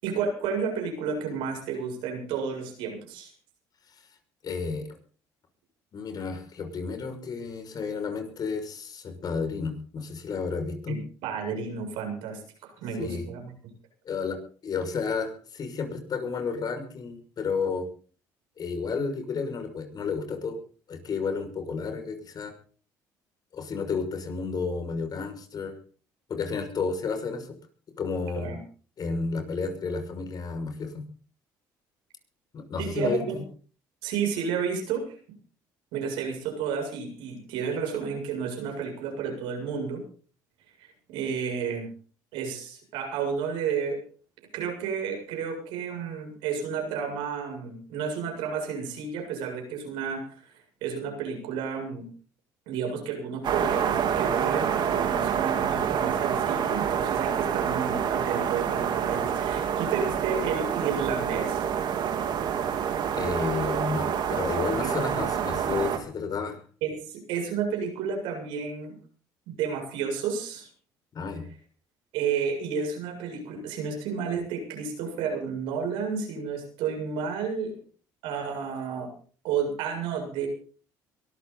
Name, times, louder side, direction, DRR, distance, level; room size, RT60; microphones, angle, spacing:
voice 1, 0.0-3.3 10.9-13.5 28.4-28.6 32.8-33.4 34.0-35.2 35.9-40.0 40.8-41.9 42.3-44.0 44.5-52.1 52.7-61.7 64.8-64.9 66.8-69.0 69.6-70.7 72.1-77.7 78.2-79.1 79.4-80.5, right 6 dB, 80° right, 3 dB, 7.4 m, -31 dB
voice 2, 4.4-4.9 5.9-11.0 13.0-13.2 14.0-17.9 18.6-20.6 20.9-22.5 23.5-25.8 26.3-27.5 28.0-28.5 29.0-31.0 32.5-33.4 63.1-66.6 71.1-71.5, left 5 dB, 50° left, 6 dB, 6.3 m, -31 dB
sound 1, 53.4-66.0, right 8 dB, 60° right, 3.4 m, -27 dB
23.0 x 13.5 x 4.1 m, 0.41 s
supercardioid pair, 75°, 9 cm